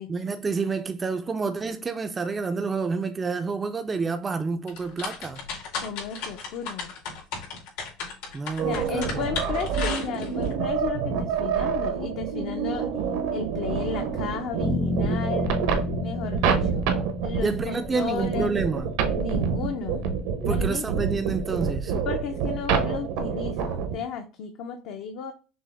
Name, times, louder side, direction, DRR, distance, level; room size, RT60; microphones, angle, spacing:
voice 1, 0.1-5.4 8.3-9.2 15.9-16.0 17.4-18.9 20.4-22.0, right 4 dB, 20° right, 0.3 m, -29 dB
sound 1, 4.7-10.5, left 5 dB, 90° left, 2.4 m, -34 dB
voice 2, 5.7-6.9 8.6-12.9 13.3-15.6 16.0-16.9 17.2-18.5 19.2-20.1 20.5-20.9 22.0-25.3, left 6 dB, 65° left, 0.6 m, -33 dB
sound 2, 8.6-24.0, right 6 dB, 80° right, 0.9 m, -27 dB
sound 3, 14.6-18.7, left 2 dB, 25° left, 0.6 m, -31 dB
6.1 x 2.0 x 3.4 m
supercardioid pair, 120°, 0 cm